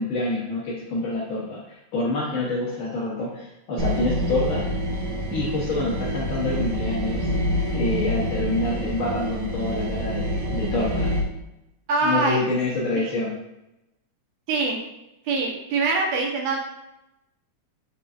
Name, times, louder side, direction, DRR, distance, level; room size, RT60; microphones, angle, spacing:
voice 1, 0.0-4.7 5.3-7.3 7.7-11.1 12.0-13.3, left 2 dB, 60° left, -5 dB, 1.4 m, -27 dB
sound 1, 3.8-11.2, equal, 85° right, 2.5 m, -27 dB
voice 2, 11.9-12.5 13.0-13.1 14.5-14.8 15.3-16.6, right 3 dB, 70° right, 1 dB, 2.1 m, -24 dB
7.0 x 5.6 x 2.4 m, 0.92 s
omnidirectional pair, 3.3 m